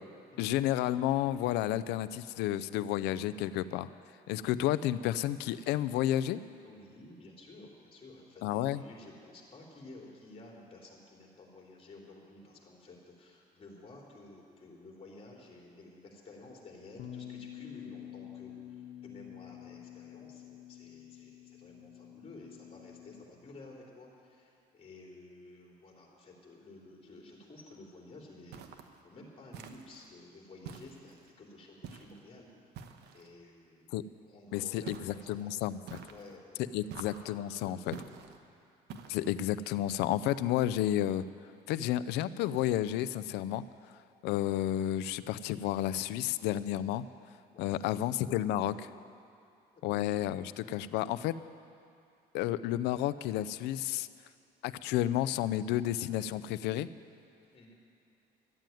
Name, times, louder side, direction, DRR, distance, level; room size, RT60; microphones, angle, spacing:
voice 1, 0.4-3.9 4.3-6.4 8.4-8.8 33.9-34.0 34.5-36.0 36.7-38.0 39.1-41.3 41.7-43.6 44.2-47.0 47.6-48.8 49.8-51.3 52.3-54.1 54.6-56.9, left 12 dB, 90° left, 15 dB, 0.5 m, -31 dB
voice 2, 6.6-28.7 29.0-32.5 33.1-33.9 34.2-35.6 36.0-36.9 37.5-38.0 47.5-47.9 48.2-48.4 49.7-50.1 50.7-50.9 57.5-57.7, left 2 dB, 35° left, -1 dB, 3.4 m, -52 dB
Bass guitar, 17.0-23.2, left 11 dB, 75° left, 1.0 m, -48 dB
sound 1, 28.5-29.0 29.5-30.1 30.6-31.3 31.8-32.2 32.7-33.3 34.9-35.3 35.9-36.4 36.9-37.4 37.9-38.4 38.9-39.4, right 7 dB, 85° right, 1.0 m, -47 dB
13.0 x 9.0 x 9.2 m, 2.5 s
cardioid pair, 110°, 17 cm